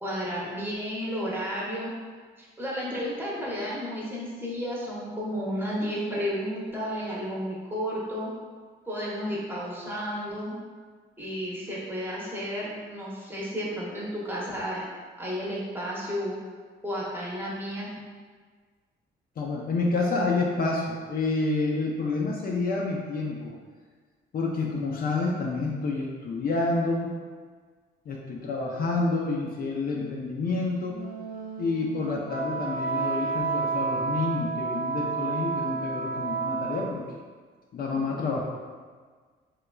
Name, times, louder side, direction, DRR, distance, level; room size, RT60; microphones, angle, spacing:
voice 1, 0.0-1.9 2.4-8.3 8.9-10.6 11.2-14.8 15.2-16.3 16.8-17.9 20.1-20.2, equal, 10° right, -6 dB, 0.7 m, -32 dB
voice 2, 19.4-23.5 24.3-27.1 28.1-31.0 31.6-37.0 37.7-38.4, left 3 dB, 50° left, -2 dB, 0.4 m, -28 dB
Wind instrument woodwind instrument, 30.9-37.1, right 5 dB, 45° right, 0.4 m, -31 dB
3.1 x 2.3 x 2.2 m, 1.5 s
cardioid pair, 90°, 20 cm